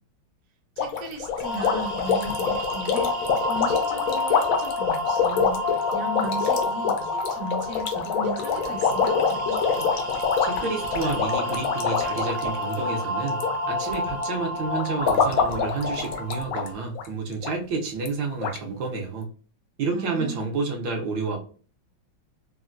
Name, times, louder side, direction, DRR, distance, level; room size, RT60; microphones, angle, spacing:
sound 1, 0.8-13.5 13.8-14.2 14.7-16.7 16.9-17.1 17.4-17.5 18.1-18.2 18.4-18.6, left 6 dB, 90° left, 0.7 m, -25 dB
voice 1, 0.8-9.9 19.9-20.4, right 1 dB, 60° right, 1 dB, 1.0 m, -37 dB
sound 2, 1.4-16.7, left 1 dB, 25° right, 0.4 m, -30 dB
voice 2, 10.4-13.4 13.7-19.3 19.8-21.4, right 4 dB, 75° right, 1 dB, 1.5 m, -30 dB
3.8 x 2.1 x 2.5 m, 0.39 s
omnidirectional pair, 2.2 m